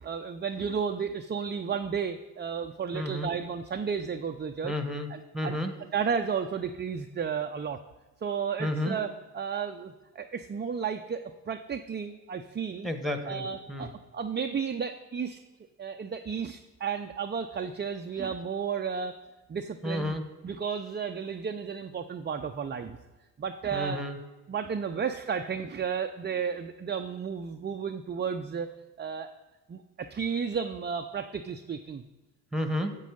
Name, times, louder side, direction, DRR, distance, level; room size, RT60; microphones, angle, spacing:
voice 1, 0.0-4.8 5.1-5.6 5.9-7.8 8.2-12.9 13.3-15.4 15.8-19.2 19.5-20.2 20.4-23.0 23.4-24.0 24.5-28.7 29.0-29.3 29.7-32.1, right 6 dB, 25° right, 6 dB, 0.6 m, -33 dB
voice 2, 2.9-3.3 4.6-5.7 8.6-9.0 12.8-13.9 19.8-20.2 23.7-24.2 32.5-33.0, left 1 dB, ahead, 7 dB, 1.4 m, -31 dB
9.2 x 7.5 x 5.2 m, 1.1 s
hypercardioid pair, 50°, 46 cm